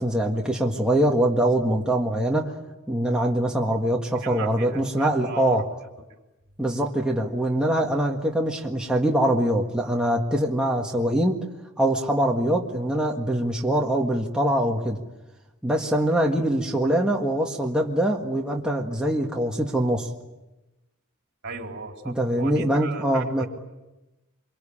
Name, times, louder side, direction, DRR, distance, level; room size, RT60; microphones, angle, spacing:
voice 1, 0.0-2.6 2.9-5.6 6.6-11.4 11.8-15.0 15.6-20.1 22.1-23.4, right 1 dB, 5° right, -1 dB, 1.7 m, -23 dB
voice 2, 4.1-5.6 21.4-23.5, right 3 dB, 55° right, 2 dB, 3.9 m, -37 dB
26.5 x 24.5 x 8.7 m, 1.0 s
head